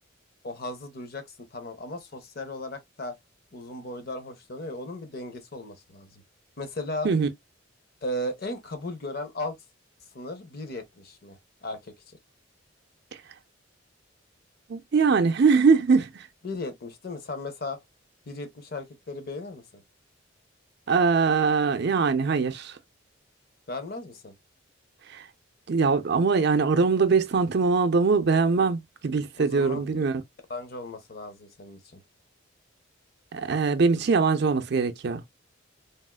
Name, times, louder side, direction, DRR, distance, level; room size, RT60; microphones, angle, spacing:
voice 1, 0.4-3.2 3.5-6.2 6.6-7.1 8.0-9.6 10.1-11.9 16.4-17.8 18.3-19.8 23.7-24.3 29.4-30.0 30.5-32.0, left 1 dB, 50° left, 0.7 m, -36 dB
voice 2, 14.7-16.3 20.9-22.8 25.1-25.2 25.7-30.2 33.3-35.2, right 4 dB, 55° right, 0.5 m, -22 dB
3.4 x 2.4 x 2.2 m
head